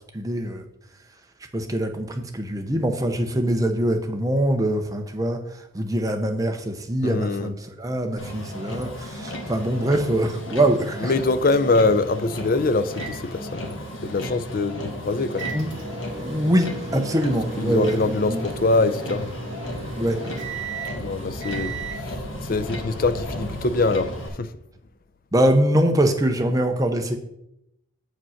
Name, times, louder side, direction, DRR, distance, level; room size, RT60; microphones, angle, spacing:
voice 1, 0.1-0.6 1.5-5.4 5.7-11.1 15.5-15.7 16.2-18.4 20.0-20.4 21.6-21.8 25.3-27.2, right 1 dB, 15° right, 0.7 m, -23 dB
voice 2, 7.0-7.5 11.0-13.8 14.0-15.6 17.6-19.3 20.9-24.1 24.4-24.5, left 3 dB, 45° left, 0.5 m, -24 dB
Motor vehicle (road), 8.2-24.3, left 1 dB, 65° left, 1.6 m, -34 dB
sound 1, 12.9-22.0, right 3 dB, 60° right, 1.5 m, -36 dB
7.9 x 5.1 x 5.7 m
head